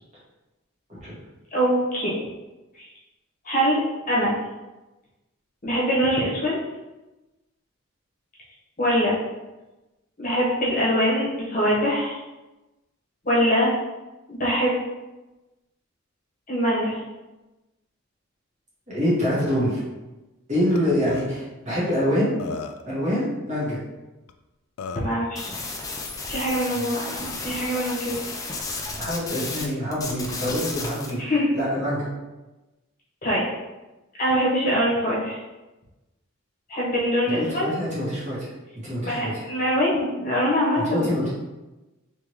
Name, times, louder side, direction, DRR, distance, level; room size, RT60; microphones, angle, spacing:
voice 1, 1.5-2.1 2.7-2.8 3.4-3.8 4.1-4.3 5.6-6.6 8.8-9.1 10.2-12.2 13.2-13.7 14.3-14.7 16.5-17.0 24.9-25.5 26.3-28.2 31.1-31.5 33.2-33.5 34.2-35.4 36.7-37.7 39.0-41.1, equal, 40° left, -6 dB, 1.1 m, -23 dB
voice 2, 18.9-19.8 20.5-22.4 22.8-23.8 26.7-26.8 29.0-31.2 31.5-32.0 37.4-38.5 38.8-39.3 40.8-41.3, equal, 35° right, -8 dB, 1.4 m, -25 dB
Burping eructation, 20.7-20.8 21.1-21.3 22.0-22.1 22.4-22.9 24.3-24.4 24.8-25.1, left 4 dB, 85° left, 0.3 m, -34 dB
sound 1, 25.4-29.7 29.9-31.1, left 3 dB, 15° left, 0.4 m, -33 dB
3.5 x 3.1 x 3.0 m, 1.1 s
head